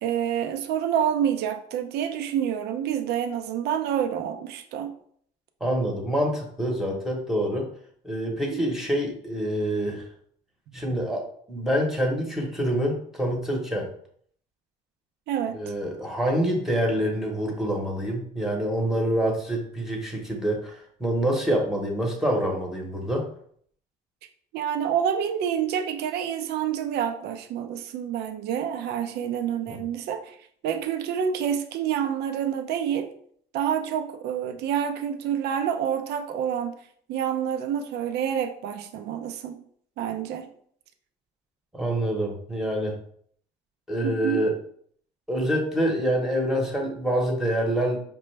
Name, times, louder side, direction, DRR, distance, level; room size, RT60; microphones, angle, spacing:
voice 1, 0.0-4.9 8.5-8.6 15.3-15.6 24.5-30.4 30.6-33.1 33.5-36.7 37.1-39.6 40.0-40.5 44.0-44.4, right 9 dB, 75° right, 7 dB, 0.5 m, -28 dB
voice 2, 5.6-7.7 8.0-10.1 10.7-13.9 15.5-23.3 29.7-29.8 41.7-43.0 43.9-44.5 45.3-48.0, right 1 dB, ahead, -1 dB, 0.9 m, -26 dB
4.9 x 2.2 x 3.2 m, 0.62 s
cardioid pair, 110°, 17 cm